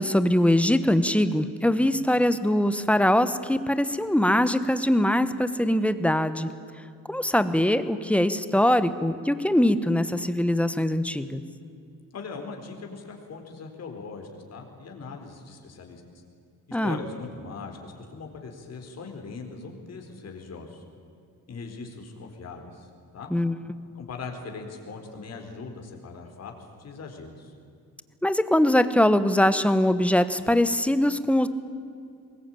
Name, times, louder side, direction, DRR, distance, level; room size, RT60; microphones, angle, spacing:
voice 1, 0.0-6.5 7.1-11.4 16.7-17.0 23.3-23.5 28.2-31.5, left 1 dB, 5° left, 12 dB, 1.0 m, -22 dB
voice 2, 12.1-16.0 16.8-20.8 21.5-23.3 23.9-26.5 26.8-27.5, left 4 dB, 45° left, 3 dB, 4.1 m, -40 dB
23.5 x 21.0 x 9.0 m, 2.5 s
cardioid pair, 140°, 34 cm